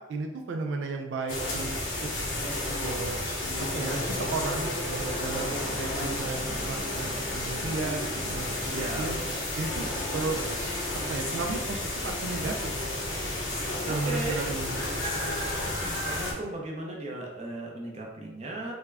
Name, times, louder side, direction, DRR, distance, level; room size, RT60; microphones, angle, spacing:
voice 1, 0.0-2.1 2.8-3.2 3.7-9.2 9.6-10.4 11.1-12.9 13.9-14.8, right 3 dB, 90° right, 3 dB, 0.3 m, -34 dB
sound 1, 1.3-16.3, left 1 dB, 90° left, 0.9 m, -31 dB
voice 2, 8.7-9.1 13.9-14.4 15.8-18.7, right 2 dB, 35° right, -1 dB, 0.6 m, -36 dB
3.5 x 2.2 x 3.3 m, 1.1 s
head